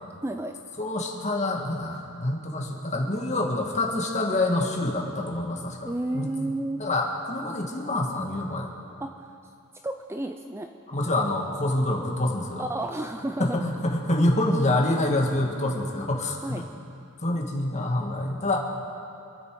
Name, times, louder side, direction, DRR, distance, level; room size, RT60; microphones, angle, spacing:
voice 1, 0.2-0.5 5.8-6.8 9.0-9.3 9.8-10.7 12.6-13.6 16.4-16.6, right 1 dB, 10° right, 5 dB, 0.5 m, -31 dB
voice 2, 0.8-6.3 6.8-8.7 10.9-12.6 13.4-16.7 17.2-18.6, left 1 dB, 30° left, 0 dB, 1.9 m, -26 dB
27.0 x 9.6 x 4.8 m, 2.6 s
head